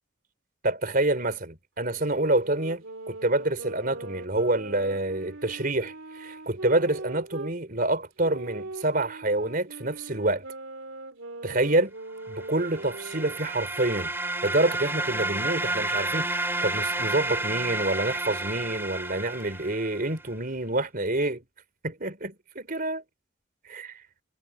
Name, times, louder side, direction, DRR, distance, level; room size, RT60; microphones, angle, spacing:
voice 1, 0.6-10.4 11.4-11.9 12.3-14.1 14.4-21.4 21.8-23.0 23.7-24.0, right 2 dB, 45° right, 4.2 m, -27 dB
sound 1, 2.1-7.6 8.2-13.4, right 2 dB, 80° right, 2.9 m, -40 dB
sound 2, 12.4-20.1, right 2 dB, 10° right, 2.6 m, -31 dB
head